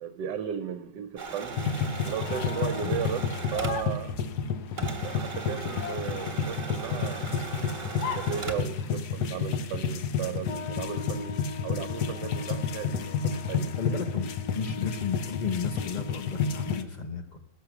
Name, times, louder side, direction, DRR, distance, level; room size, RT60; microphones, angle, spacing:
voice 1, 0.0-1.6 2.0-4.1 5.0-7.3 7.8-14.0, right 9 dB, 75° right, 7 dB, 1.3 m, -36 dB
sound 1, 1.2-4.5 4.8-8.8, right 4 dB, 30° right, 1.2 m, -38 dB
sound 2, 1.5-16.8, left 6 dB, 65° left, 1.2 m, -31 dB
voice 2, 13.8-17.4, left 6 dB, 90° left, 7 dB, 0.4 m, -33 dB
17.0 x 6.4 x 5.9 m, 0.94 s
omnidirectional pair, 2.0 m